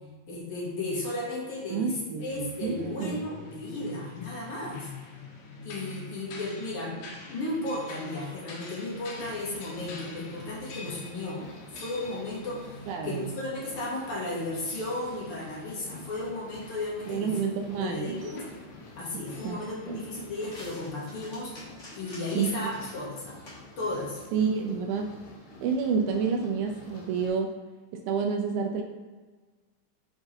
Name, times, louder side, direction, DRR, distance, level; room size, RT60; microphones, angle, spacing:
voice 1, 0.3-4.9 5.6-11.5 11.7-17.4 17.8-18.4 18.9-21.5 21.9-23.4 23.8-24.2, left 2 dB, 50° left, -5 dB, 1.7 m, -34 dB
voice 2, 1.7-3.2 12.9-13.3 17.1-18.2 19.4-19.6 19.9-20.0 22.3-22.7 24.3-25.1 25.6-27.5 27.9-28.8, right 6 dB, 85° right, 4 dB, 2.4 m, -29 dB
sound 1, 2.2-20.9, left 2 dB, 70° left, 2.4 m, -46 dB
sound 2, 8.9-27.3, left 2 dB, 85° left, 1.2 m, -49 dB
sound 3, 18.7-25.2, left 1 dB, 35° left, 1.1 m, -52 dB
6.4 x 4.6 x 4.2 m, 1.3 s
omnidirectional pair, 4.4 m